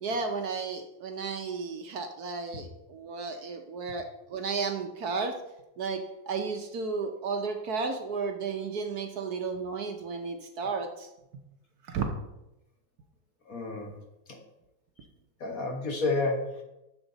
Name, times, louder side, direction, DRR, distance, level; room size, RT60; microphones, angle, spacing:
voice 1, 0.0-4.0 4.3-5.3 5.8-6.0 6.3-11.1 11.9-12.2, right 4 dB, 60° right, 5 dB, 1.2 m, -33 dB
voice 2, 13.5-13.9 14.3-14.4 15.4-16.6, left 3 dB, 50° left, 2 dB, 1.8 m, -30 dB
10.5 x 7.2 x 3.9 m, 0.93 s
omnidirectional pair, 2.0 m